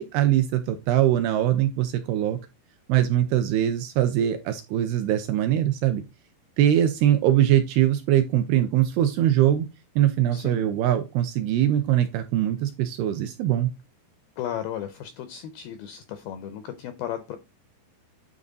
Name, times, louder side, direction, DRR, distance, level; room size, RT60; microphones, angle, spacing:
voice 1, 0.0-2.4 2.9-6.0 6.6-9.7 10.0-13.7, right 11 dB, 80° right, 8 dB, 2.4 m, -22 dB
voice 2, 10.3-10.7 14.4-17.4, left 10 dB, 85° left, 9 dB, 2.1 m, -34 dB
9.5 x 3.7 x 3.9 m, 0.26 s
omnidirectional pair, 5.1 m